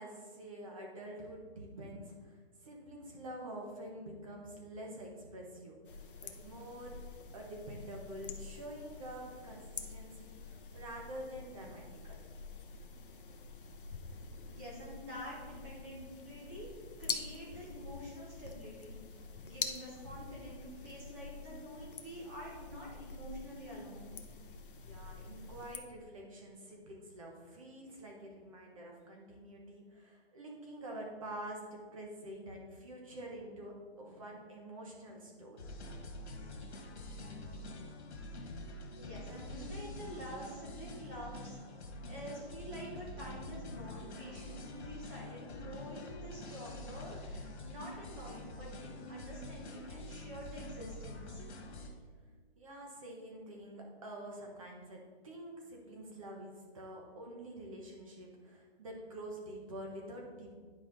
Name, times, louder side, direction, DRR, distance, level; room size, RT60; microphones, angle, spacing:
voice 1, 0.0-5.8 6.2-7.1 7.3-12.2 24.7-35.6 52.6-60.5, right 1 dB, 30° right, 0 dB, 1.2 m, -47 dB
sound 1, 5.8-25.8, left 4 dB, 55° left, 0.8 m, -46 dB
voice 2, 14.5-16.7 17.0-19.0 19.4-24.1 38.9-41.6 42.1-51.4, equal, 10° right, -4 dB, 1.0 m, -47 dB
sound 2, 35.6-51.9, left 1 dB, 80° left, 1.7 m, -46 dB
10.0 x 4.8 x 4.0 m, 1.5 s
hypercardioid pair, 175°, 33 cm